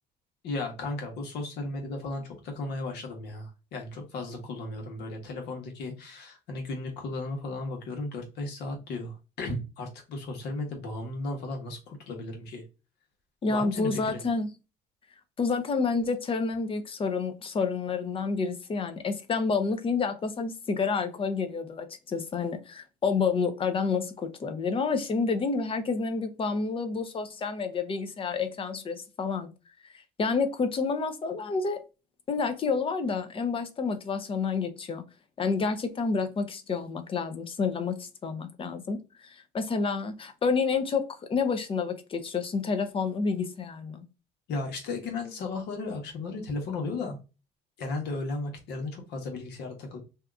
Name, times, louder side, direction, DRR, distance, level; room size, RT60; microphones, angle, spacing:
voice 1, 0.4-12.6 13.5-14.2 44.5-47.2 47.8-50.0, left 2 dB, 80° left, 1.2 m, -35 dB
voice 2, 13.4-14.5 15.4-29.5 30.2-31.8 32.3-35.0 35.4-44.0, left 4 dB, 30° left, 0.6 m, -29 dB
2.8 x 2.3 x 3.5 m
cardioid pair, 110°, 17 cm